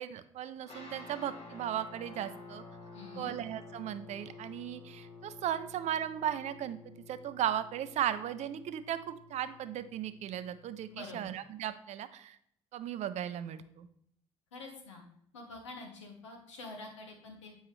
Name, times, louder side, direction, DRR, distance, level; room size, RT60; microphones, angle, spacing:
voice 1, 0.0-2.6 3.2-12.4 12.7-13.9, right 10 dB, 50° right, 13 dB, 0.5 m, -36 dB
sound 1, 0.6-11.1, left 4 dB, 40° left, 1.9 m, -51 dB
voice 2, 2.9-3.3 10.9-11.2 14.5-15.0 15.3-17.6, left 2 dB, 80° left, 2 dB, 1.2 m, -46 dB
7.7 x 5.4 x 3.1 m, 0.70 s
figure-of-eight pair, 50°, 15 cm